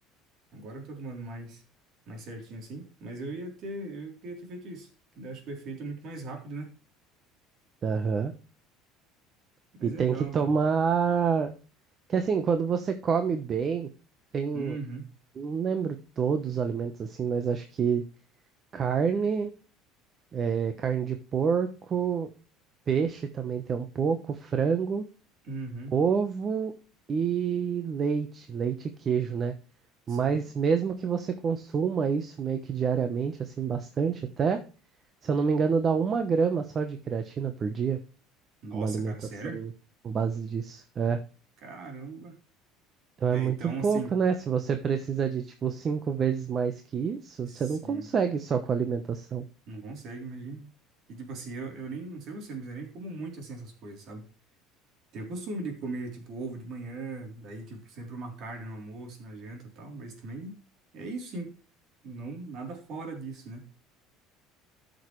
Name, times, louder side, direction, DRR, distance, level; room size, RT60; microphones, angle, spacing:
voice 1, 0.5-1.6 2.1-4.9 5.2-6.7 9.8-10.5 14.5-15.1 25.4-25.9 30.1-30.5 38.6-39.6 41.6-42.4 43.3-44.1 47.5-48.1 49.7-50.7 51.1-54.2 55.1-60.6 60.9-61.5 62.0-63.7, right 3 dB, 50° right, 3 dB, 3.5 m, -39 dB
voice 2, 7.8-8.3 9.8-11.5 12.1-13.9 14.3-14.8 15.4-18.0 18.7-19.5 20.3-22.3 22.9-25.0 25.9-26.7 27.1-29.5 30.1-34.6 35.2-38.0 38.7-39.1 39.5-39.7 40.0-41.2 43.2-49.4, right 6 dB, 30° right, 8 dB, 1.0 m, -27 dB
13.0 x 6.5 x 3.2 m, 0.36 s
cardioid pair, 135°, 0 cm